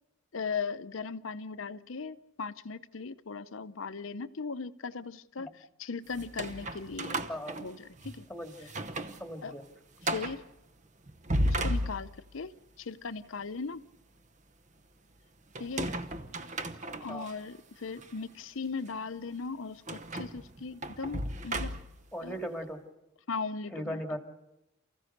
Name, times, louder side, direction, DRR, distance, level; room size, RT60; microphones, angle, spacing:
voice 1, 0.3-7.3 7.6-8.3 9.4-9.6 10.1-10.4 11.4-13.8 15.6-15.9 17.0-21.7 22.2-22.4 23.3-24.2, left 4 dB, 70° left, 13 dB, 0.7 m, -38 dB
sound 1, 6.1-8.2 8.6-9.2 9.5-9.6 10.0-10.4 11.1-12.4 15.5-17.3 18.0-18.1 19.9-22.1, right 1 dB, 35° right, 0.9 m, -34 dB
voice 2, 8.3-8.7 9.2-9.6 17.1-17.3 22.1-22.8 23.7-24.2, equal, 5° left, 5 dB, 2.0 m, -38 dB
29.0 x 15.5 x 6.6 m, 0.94 s
head